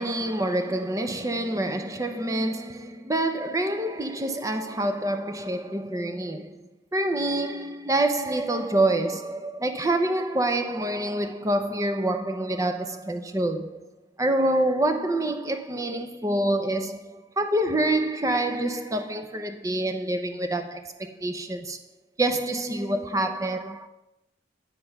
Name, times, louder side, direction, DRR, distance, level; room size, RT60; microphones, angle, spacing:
voice 1, 0.0-6.6 6.9-13.8 14.2-21.8 22.2-23.9, right 1 dB, 15° right, 0.6 m, -26 dB
9.9 x 5.9 x 5.4 m
head